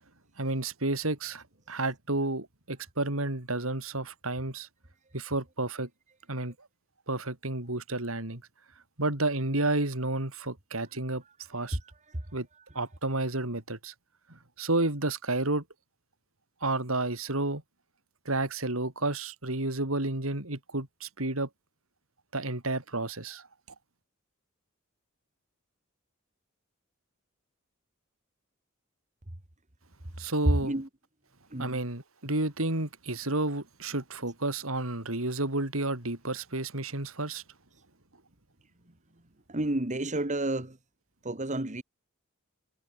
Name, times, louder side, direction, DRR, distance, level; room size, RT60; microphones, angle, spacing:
voice 1, 0.4-4.7 5.1-5.9 6.3-6.5 7.1-8.4 9.0-11.2 11.5-11.8 12.3-12.5 12.7-13.9 14.3-15.6 16.6-17.6 18.3-21.5 22.3-23.5 30.2-30.7 31.6-37.4, right 2 dB, 80° right, 4.1 m, -31 dB
voice 2, 31.5-31.8 39.5-40.8 41.2-41.8, right 1 dB, 35° right, 2.1 m, -31 dB
head